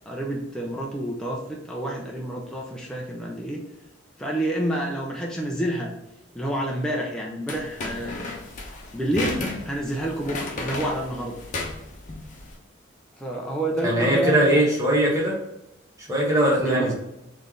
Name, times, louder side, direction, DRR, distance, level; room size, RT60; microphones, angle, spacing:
voice 1, 0.1-3.6 4.2-5.9 6.3-8.3 8.9-11.4 13.2-14.7 16.6-16.9, right 1 dB, 5° left, -3 dB, 0.5 m, -29 dB
sound 1, 7.5-12.5, left 2 dB, 40° left, 0.9 m, -33 dB
voice 2, 13.8-15.4 16.1-16.9, right 1 dB, 15° right, -4 dB, 1.2 m, -20 dB
4.3 x 3.3 x 3.7 m, 0.88 s
head